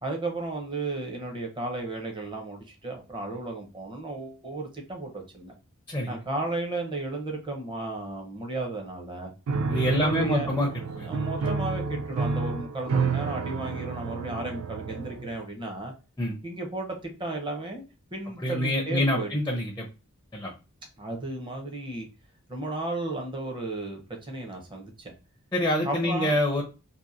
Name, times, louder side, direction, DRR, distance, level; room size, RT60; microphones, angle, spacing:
voice 1, 0.0-5.5 6.1-9.3 9.9-10.5 11.0-15.9 16.4-17.8 18.1-19.3 21.0-22.1 22.5-25.1 25.8-26.3, right 2 dB, 25° right, 2 dB, 0.7 m, -34 dB
Piano, 9.5-15.4, right 4 dB, 75° right, 0.3 m, -30 dB
voice 2, 9.7-10.7 11.0-11.1 11.4-11.5 16.2-16.4 18.4-19.9 20.3-20.5 25.5-26.6, left 1 dB, 10° left, 0 dB, 0.4 m, -26 dB
2.8 x 2.5 x 2.4 m, 0.31 s
head